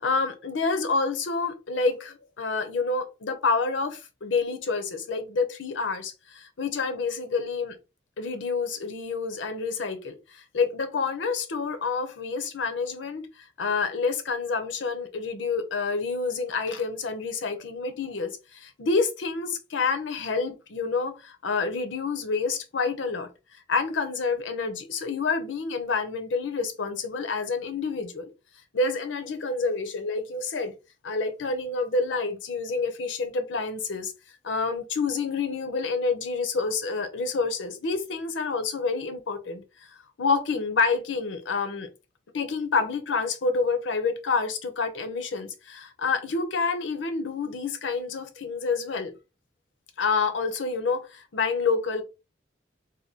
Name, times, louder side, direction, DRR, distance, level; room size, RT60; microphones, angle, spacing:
voice 1, 0.0-7.8 8.2-13.3 13.6-23.3 23.7-28.3 28.7-30.8 31.0-34.1 34.4-39.6 40.2-41.9 42.3-49.1 50.0-52.0, left 4 dB, 90° left, 0.7 m, -28 dB
2.8 x 2.2 x 3.6 m
head